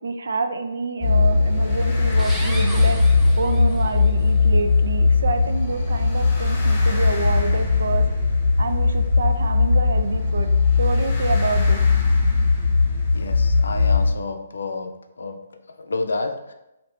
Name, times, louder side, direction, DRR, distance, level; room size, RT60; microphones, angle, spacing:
voice 1, 0.0-3.0 3.4-8.0 8.6-10.5 10.8-11.8, right 3 dB, 75° right, 7 dB, 0.4 m, -27 dB
sound 1, 1.0-14.1, left 4 dB, 15° left, 1.0 m, -19 dB
sound 2, 2.1-4.1, right 1 dB, 5° right, 0.4 m, -37 dB
voice 2, 13.1-14.9 15.2-15.4 15.8-16.5, left 3 dB, 85° left, 5 dB, 0.4 m, -29 dB
3.1 x 2.7 x 3.1 m, 0.92 s
hypercardioid pair, 155°, 0 cm